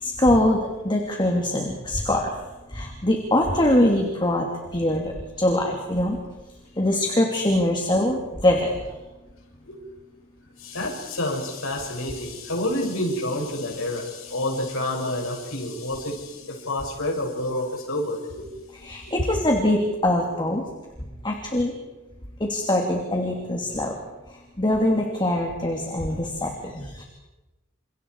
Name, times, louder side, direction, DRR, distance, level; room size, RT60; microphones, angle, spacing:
voice 1, 0.0-2.3 2.7-4.5 4.7-5.1 5.4-6.2 6.8-8.7 18.8-20.6 21.2-21.7 22.4-23.9 24.6-27.0, left 1 dB, 20° left, 1 dB, 3.0 m, -23 dB
voice 2, 10.6-18.5, left 1 dB, 65° left, 0 dB, 7.0 m, -28 dB
29.5 x 28.5 x 4.9 m, 1.1 s
head